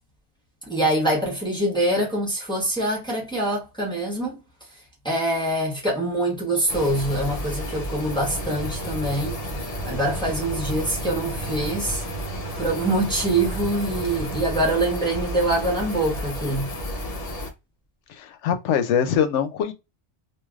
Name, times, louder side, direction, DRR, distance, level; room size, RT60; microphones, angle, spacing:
voice 1, 0.6-4.4 5.0-9.4 9.8-12.0 12.6-16.7, right 1 dB, 5° left, 1.1 m, -24 dB
sound 1, 6.7-17.5, left 1 dB, 40° left, 0.6 m, -32 dB
sound 2, 8.3-14.6, right 6 dB, 50° right, 0.5 m, -38 dB
voice 2, 18.1-19.7, left 8 dB, 85° left, 0.9 m, -23 dB
3.2 x 2.5 x 2.3 m
omnidirectional pair, 1.2 m